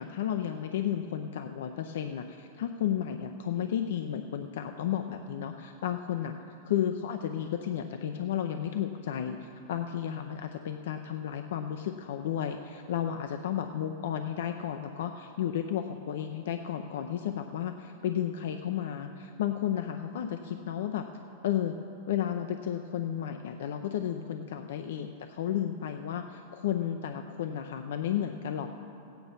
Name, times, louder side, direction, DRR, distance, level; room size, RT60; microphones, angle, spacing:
voice 1, 0.0-6.3 6.6-9.4 9.7-21.0 21.4-21.7 22.1-28.8, left 10 dB, 75° left, 7 dB, 0.5 m, -33 dB
15.0 x 9.2 x 5.3 m, 2.7 s
hypercardioid pair, 135°, 0 cm